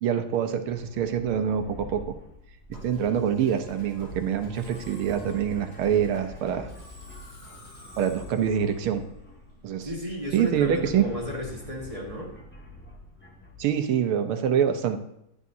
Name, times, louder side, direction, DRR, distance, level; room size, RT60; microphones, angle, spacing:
voice 1, 0.0-2.0 2.7-6.7 8.0-9.1 9.6-9.9 10.3-11.1 13.6-15.0, right 8 dB, 80° right, 7 dB, 1.7 m, -25 dB
sound 1, 0.6-13.7, left 1 dB, 5° left, 1.2 m, -46 dB
Musical instrument, 2.7-10.0, equal, 50° left, 3.6 m, -47 dB
voice 2, 9.8-12.3, left 1 dB, 20° right, -3 dB, 1.5 m, -34 dB
10.5 x 9.9 x 2.7 m, 0.78 s
omnidirectional pair, 2.3 m